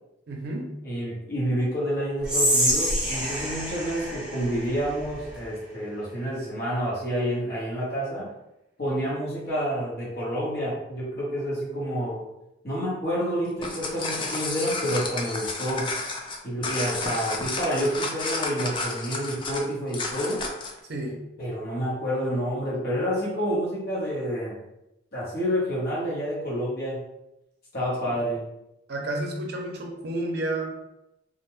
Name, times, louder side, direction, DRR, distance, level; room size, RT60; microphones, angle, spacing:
voice 1, 0.3-0.7 20.9-21.2 28.1-28.2 28.9-30.8, right 1 dB, 55° right, 0 dB, 0.5 m, -31 dB
voice 2, 0.8-8.3 8.8-12.2 12.6-16.0 16.4-20.4 21.4-24.5 25.1-27.0 27.7-28.4, equal, 55° left, -7 dB, 1.1 m, -28 dB
Whispering, 2.2-5.4, equal, 5° right, 0.7 m, -27 dB
sound 1, 13.5-20.8, left 3 dB, 25° left, 0.3 m, -31 dB
2.4 x 2.2 x 3.0 m, 0.87 s
head